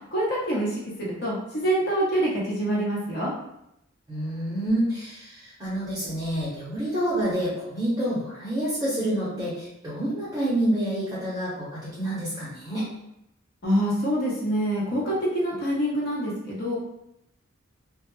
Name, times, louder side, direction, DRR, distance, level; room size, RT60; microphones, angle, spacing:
voice 1, 0.1-3.3 13.6-16.7, right 1 dB, 50° left, -5 dB, 0.9 m, -26 dB
voice 2, 4.1-12.9, right 1 dB, 15° right, -9 dB, 0.7 m, -28 dB
2.2 x 2.1 x 3.1 m, 0.81 s
head